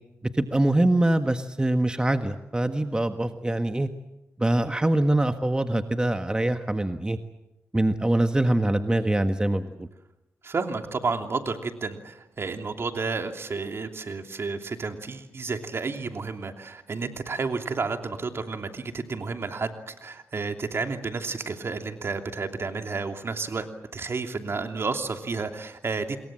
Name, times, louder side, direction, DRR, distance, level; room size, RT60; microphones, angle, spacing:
voice 1, 0.3-3.9 4.4-7.2 7.7-9.9, right 1 dB, 15° right, 7 dB, 1.5 m, -24 dB
voice 2, 10.4-23.7 23.9-26.2, right 4 dB, 55° right, 5 dB, 3.0 m, -31 dB
27.0 x 22.5 x 7.7 m, 0.94 s
cardioid pair, 55°, 5 cm